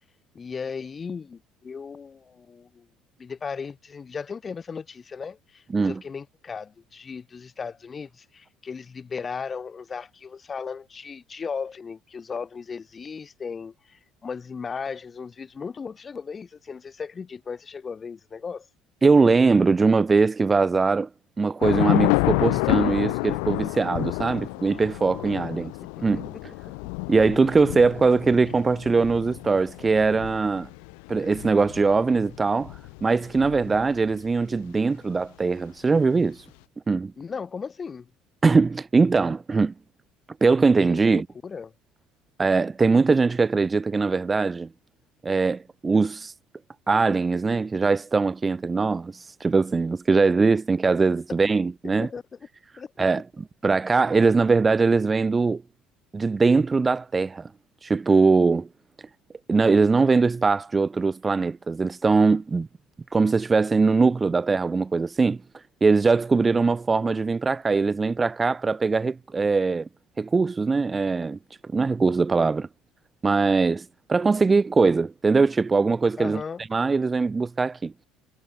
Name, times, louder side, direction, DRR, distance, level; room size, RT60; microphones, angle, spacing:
voice 1, 0.3-2.9 3.2-18.7 25.6-26.7 37.2-38.1 40.9-41.7 52.0-52.2 52.8-52.9 76.2-76.6, left 5 dB, 30° left, 1.0 m, -36 dB
voice 2, 19.0-21.1 21.4-25.7 26.0-26.2 27.1-30.7 31.1-36.4 36.9-37.1 38.4-39.7 40.4-41.3 42.4-44.7 45.2-46.3 46.9-52.1 53.0-53.2 53.6-55.6 56.1-57.5 57.8-58.7 59.5-62.7 63.1-65.4 65.8-69.9 70.2-72.7 73.2-76.4 76.7-77.9, right 4 dB, 20° right, 0.3 m, -21 dB
Thunder / Rain, 21.6-34.1, left 40 dB or more, 85° left, 0.5 m, -29 dB
cardioid pair, 110°, 0 cm